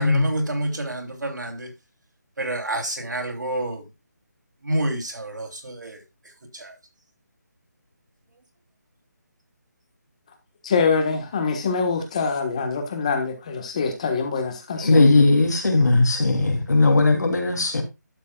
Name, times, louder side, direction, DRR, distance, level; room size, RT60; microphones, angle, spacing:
voice 1, 0.0-1.7 2.4-3.8 4.7-5.9, right 1 dB, 85° right, 3.4 m, -28 dB
voice 2, 10.6-15.1, left 5 dB, 20° left, 1.4 m, -24 dB
voice 3, 14.8-17.8, left 3 dB, 65° left, 3.2 m, -18 dB
11.5 x 7.2 x 2.3 m
figure-of-eight pair, 175°, 10 cm